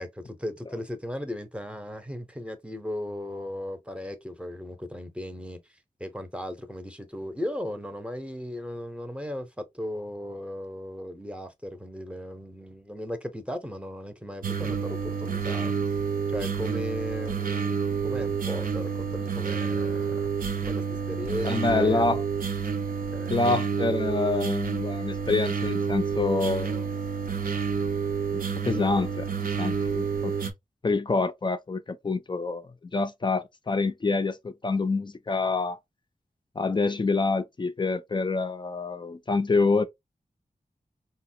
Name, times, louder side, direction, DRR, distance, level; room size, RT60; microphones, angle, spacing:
voice 1, 0.0-5.6 6.0-9.5 9.7-15.7 16.3-20.3 20.6-22.1 23.1-23.3, left 1 dB, 10° right, 0.7 m, -36 dB
sound 1, 14.4-30.5, right 6 dB, 75° right, 0.6 m, -29 dB
voice 2, 21.4-22.2 23.3-26.9 28.3-29.3 29.6-30.3 30.8-35.8 36.6-39.9, left 3 dB, 30° left, 0.4 m, -26 dB
3.9 x 2.1 x 2.6 m
wide cardioid pair, 85°, 15 cm